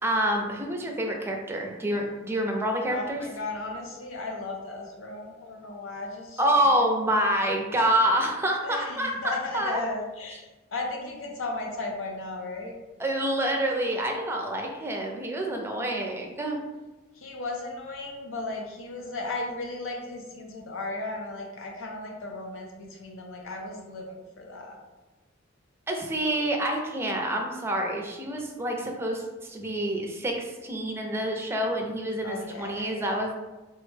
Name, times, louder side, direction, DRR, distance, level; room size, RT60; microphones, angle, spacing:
voice 1, 0.0-3.2 6.4-9.8 13.0-16.6 25.9-33.3, right 1 dB, 15° right, 1 dB, 0.4 m, -27 dB
voice 2, 2.9-6.4 8.6-10.4 10.7-12.8 17.1-24.8 32.2-33.1, left 2 dB, 90° left, 1 dB, 0.6 m, -36 dB
3.4 x 2.1 x 3.2 m, 1.1 s
head